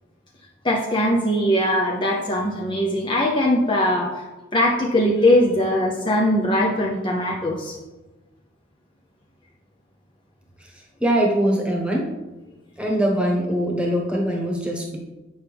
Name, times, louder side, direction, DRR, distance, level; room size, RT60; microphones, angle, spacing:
voice 1, 0.6-4.2 4.5-7.8, left 1 dB, 25° left, -2 dB, 0.7 m, -20 dB
voice 2, 11.0-12.1 12.8-15.0, right 1 dB, 5° right, -1 dB, 1.2 m, -22 dB
7.8 x 5.8 x 3.4 m, 1.1 s
head